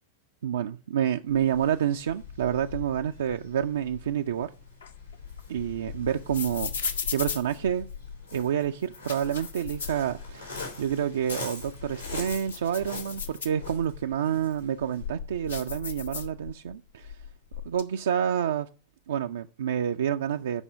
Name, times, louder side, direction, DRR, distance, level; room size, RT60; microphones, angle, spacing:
voice 1, 0.4-4.5 5.5-7.9 8.3-17.2 17.6-18.7 19.1-20.6, right 9 dB, 65° right, 5 dB, 0.4 m, -28 dB
Waves surf, 1.3-15.1, left 4 dB, 85° left, 4.2 m, -43 dB
sound 1, 4.8-8.2 8.8-10.7 11.0-11.1 11.6-14.0 14.6-16.7 17.0-17.8, left 6 dB, 70° left, 0.9 m, -37 dB
8.1 x 5.5 x 6.9 m, 0.36 s
figure-of-eight pair, 90°, 0 cm